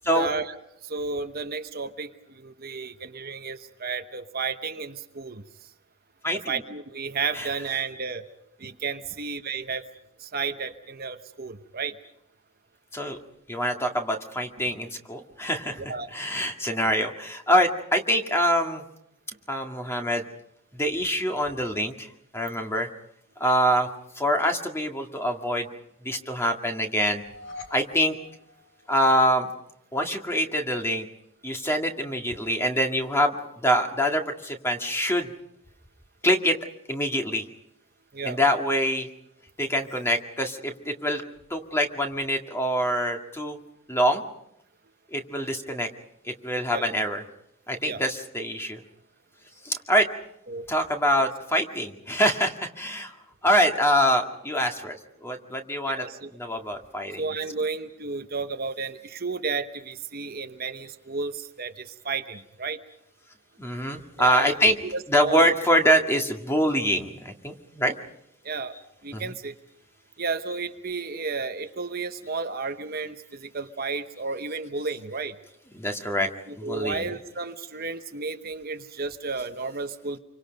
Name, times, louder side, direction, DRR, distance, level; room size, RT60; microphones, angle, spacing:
voice 1, 0.1-0.5 0.8-5.4 6.5-8.2 8.6-9.8 10.2-11.9 15.9-16.1 38.1-38.4 46.7-46.9 47.8-48.0 50.5-50.7 55.8-56.3 57.2-62.8 64.2-65.5 68.4-68.8 69.0-69.5 70.2-75.3 76.5-80.2, right 4 dB, 40° right, 7 dB, 1.0 m, -32 dB
voice 2, 6.2-6.6 7.3-7.5 12.9-13.2 13.5-15.8 16.1-18.8 19.5-20.2 20.7-22.9 23.4-23.9 24.1-25.7 26.0-27.2 27.7-28.2 28.9-29.5 29.9-31.1 31.4-33.3 33.6-35.3 36.2-36.6 36.9-37.4 38.2-39.1 39.6-41.2 41.5-43.6 43.9-44.2 45.1-45.9 46.2-47.2 47.7-48.8 49.6-50.1 50.7-53.1 53.4-56.0 56.3-57.3 63.6-64.8 65.1-67.9 69.1-69.3 75.7-76.3 76.6-77.1, equal, 10° left, 3 dB, 2.0 m, -25 dB
sound 1, 27.0-29.3, left 3 dB, 55° left, 2.8 m, -45 dB
27.5 x 24.5 x 5.3 m, 0.80 s
head